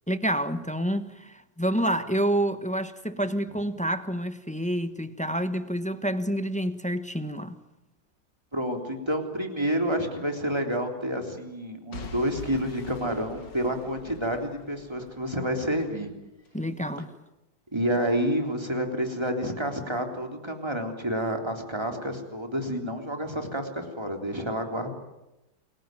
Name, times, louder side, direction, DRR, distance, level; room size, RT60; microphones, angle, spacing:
voice 1, 0.1-7.6 16.5-17.1, right 1 dB, 5° left, 1.0 m, -28 dB
voice 2, 8.5-16.1 17.7-24.9, equal, 15° right, 3.6 m, -29 dB
Boom / Shatter / Crushing, 11.9-15.9 16.5-16.6, left 3 dB, 70° left, 2.6 m, -44 dB
29.0 x 21.5 x 9.3 m
omnidirectional pair, 2.0 m